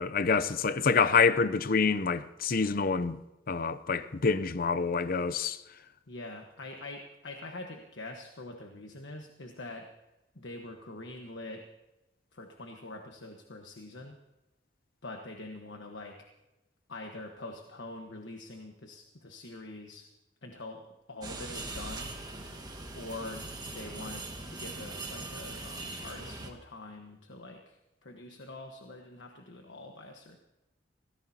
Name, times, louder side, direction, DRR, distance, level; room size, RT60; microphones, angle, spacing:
voice 1, 0.0-3.2 3.5-5.6, left 5 dB, 50° left, 0.6 m, -27 dB
voice 2, 0.9-1.3 6.1-9.9 10.3-11.6 12.3-14.2 15.0-16.2 16.9-20.1 20.4-22.1 22.9-30.4, left 2 dB, 80° left, 1.4 m, -44 dB
sound 1, 21.2-26.5, right 2 dB, 25° right, 1.8 m, -41 dB
25.0 x 17.5 x 2.9 m
head